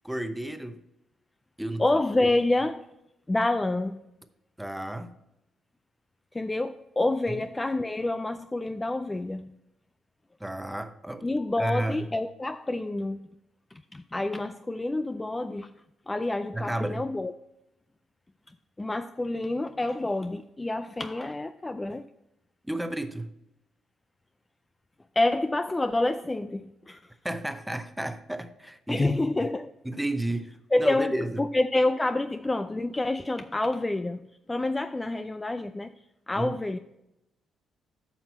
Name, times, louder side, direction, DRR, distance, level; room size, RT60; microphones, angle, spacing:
voice 1, 0.0-0.8 1.6-1.8 2.2-2.3 4.6-5.1 7.3-7.4 10.4-11.2 11.6-12.1 16.5-17.1 22.7-23.3 27.2-29.1 29.8-31.5 36.3-36.6, right 1 dB, 5° right, 0.7 m, -32 dB
voice 2, 1.8-2.9 3.3-4.0 6.3-9.5 11.2-13.3 13.7-15.7 16.1-17.3 18.8-22.0 25.2-27.1 28.9-29.7 30.7-34.2 34.5-35.9 36.3-36.8, left 2 dB, 15° left, 0.3 m, -28 dB
8.9 x 5.9 x 4.1 m
cardioid pair, 90°, 0 cm